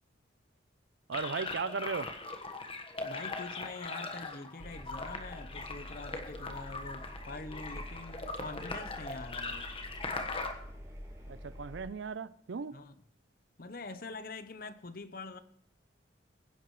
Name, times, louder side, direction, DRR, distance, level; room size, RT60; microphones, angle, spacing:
sound 1, 1.1-10.5, left 3 dB, 30° left, 1.3 m, -40 dB
voice 1, 1.1-2.1 11.3-12.8, right 5 dB, 70° right, 0.5 m, -37 dB
voice 2, 3.0-9.7 12.7-12.9 13.6-15.4, left 3 dB, 50° left, 0.8 m, -44 dB
Engine, 4.6-11.9, equal, 15° right, 2.3 m, -47 dB
22.5 x 10.5 x 3.2 m
head